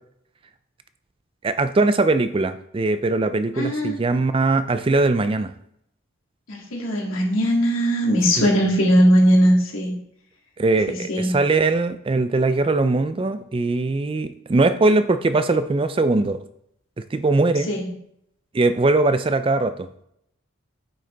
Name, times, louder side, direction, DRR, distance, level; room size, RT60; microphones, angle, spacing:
voice 1, 1.4-5.5 8.4-8.5 10.6-16.4 17.1-17.7 18.5-19.9, right 3 dB, 25° right, 11 dB, 0.3 m, -21 dB
voice 2, 3.5-4.0 6.5-9.9 10.9-11.4 17.7-17.8, equal, 75° left, -3 dB, 2.5 m, -19 dB
8.7 x 6.5 x 3.4 m, 0.73 s
head